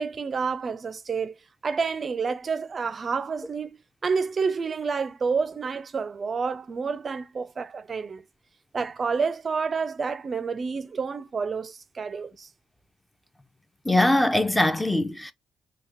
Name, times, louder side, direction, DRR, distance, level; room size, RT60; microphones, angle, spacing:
voice 1, 0.0-1.4 1.6-8.2 8.7-12.5, right 5 dB, 40° right, 0.4 m, -29 dB
voice 2, 13.9-15.3, left 1 dB, 10° left, 0.6 m, -22 dB
5.0 x 2.8 x 2.5 m
cardioid pair, 90°, 0 cm